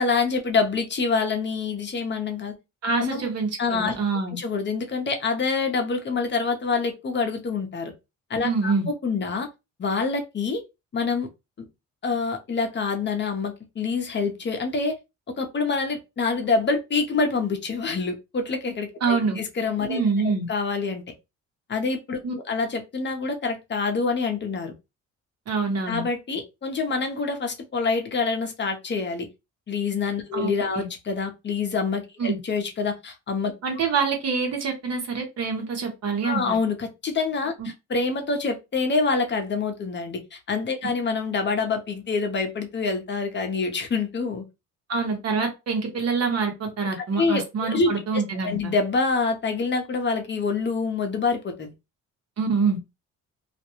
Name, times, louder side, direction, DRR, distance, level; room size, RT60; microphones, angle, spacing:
voice 1, 0.0-2.5 3.0-3.2 3.6-3.9 4.3-7.9 8.3-8.7 9.0-9.5 9.8-10.6 10.9-11.3 12.0-15.0 15.4-20.0 20.5-21.0 21.7-24.7 25.9-29.3 29.7-33.5 36.2-37.5 37.9-44.4 47.2-51.7, left 4 dB, 35° left, 5 dB, 0.8 m, -26 dB
voice 2, 2.8-4.4 8.4-8.9 19.0-19.4 19.9-20.5 22.2-22.3 25.5-26.0 30.3-30.9 32.2-32.4 33.6-36.6 37.6-37.7 44.9-48.7 52.4-52.8, right 4 dB, 55° right, 3 dB, 1.0 m, -26 dB
2.5 x 2.2 x 2.9 m, 0.25 s
cardioid pair, 90°, 30 cm